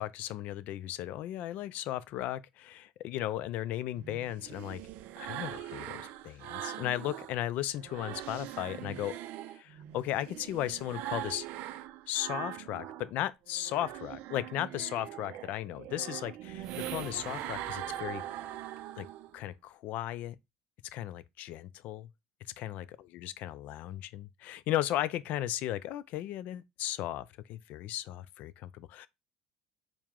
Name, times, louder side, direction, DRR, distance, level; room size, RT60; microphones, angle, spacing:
voice 1, 0.0-4.8 5.2-9.1 9.5-11.5 12.1-18.2 19.0-19.1 19.3-20.4 20.9-22.1 22.6-29.1, left 13 dB, 60° left, 0.3 m, -36 dB
sound 1, 3.9-7.4 7.7-13.1 13.5-19.4, right 13 dB, 65° right, 0.4 m, -42 dB
sound 2, 16.5-19.1, right 3 dB, 20° right, 0.8 m, -51 dB
4.6 x 2.1 x 3.6 m
cardioid pair, 135°, 3 cm